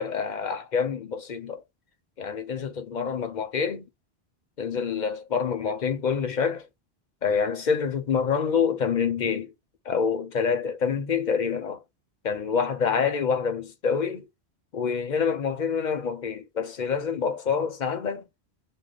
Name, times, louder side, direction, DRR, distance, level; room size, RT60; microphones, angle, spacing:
voice 1, 0.0-1.6 2.2-3.9 4.6-6.7 7.2-9.5 9.8-11.8 12.2-14.3 14.7-18.2, left 6 dB, 50° left, 0.7 m, -27 dB
3.1 x 2.1 x 3.9 m
omnidirectional pair, 1.1 m